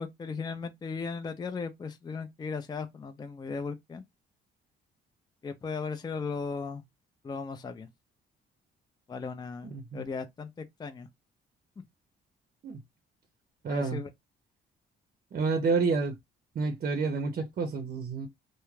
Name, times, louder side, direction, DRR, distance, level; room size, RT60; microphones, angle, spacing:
voice 1, 0.0-4.0 5.4-6.8 7.2-7.9 9.1-11.1 13.7-14.1, left 5 dB, 20° left, 0.4 m, -37 dB
voice 2, 9.6-10.0 12.6-12.8 13.6-14.0 15.3-16.1 16.6-18.3, right 4 dB, 45° right, 0.6 m, -29 dB
2.3 x 2.1 x 3.1 m
cardioid pair, 90°, 20 cm